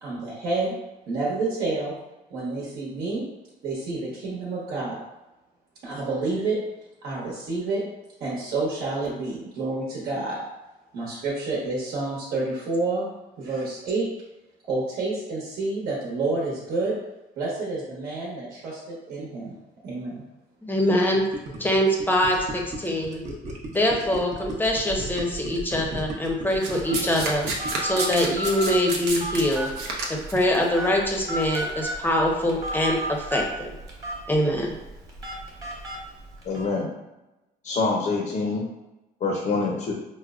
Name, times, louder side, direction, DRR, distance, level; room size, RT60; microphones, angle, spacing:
voice 1, 0.0-0.7 1.1-1.9 2.3-3.2 3.6-5.0 5.8-6.6 7.0-7.8 8.2-10.4 10.9-13.1 13.4-14.1 14.6-17.0 17.4-19.6 19.8-20.2, right 3 dB, 70° right, -6 dB, 1.0 m, -29 dB
voice 2, 20.6-21.3 21.6-23.2 23.7-29.7 30.1-33.7 34.3-34.8, left 1 dB, 10° left, 0 dB, 0.6 m, -24 dB
Gurgling, 20.9-28.0, right 2 dB, 45° right, 0.8 m, -35 dB
Domestic sounds home sounds, 26.6-30.6 31.5-31.6, right 3 dB, 90° right, 0.7 m, -30 dB
Telephone, 26.8-36.7, right 1 dB, 20° right, 1.1 m, -34 dB
voice 3, 36.4-36.9 37.6-38.6 39.2-39.9, left 3 dB, 50° left, -1 dB, 0.6 m, -25 dB
4.6 x 2.1 x 2.4 m, 1.0 s
cardioid pair, 110°, 17 cm